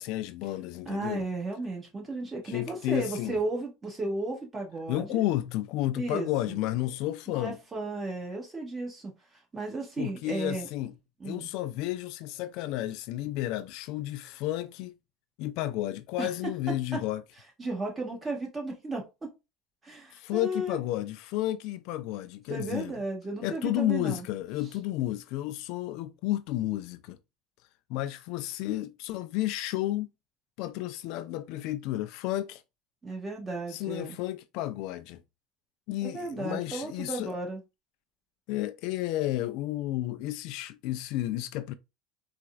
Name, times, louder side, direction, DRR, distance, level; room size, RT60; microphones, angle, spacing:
voice 1, 0.0-1.3 2.5-3.4 4.9-7.6 10.0-10.9 11.2-14.9 15.4-17.2 20.1-22.9 23.4-27.2 27.9-30.1 30.6-32.6 33.7-35.2 35.9-37.3 38.5-41.7, left 14 dB, 65° left, 0.3 m, -32 dB
voice 2, 0.8-5.2 5.9-6.6 7.3-9.1 9.5-10.7 11.2-11.5 16.2-16.3 16.9-17.0 17.6-19.3 19.8-20.8 22.5-24.2 33.0-34.2 36.0-37.6, right 2 dB, 20° right, 1.7 m, -34 dB
4.1 x 2.4 x 2.3 m
supercardioid pair, 100°, 0 cm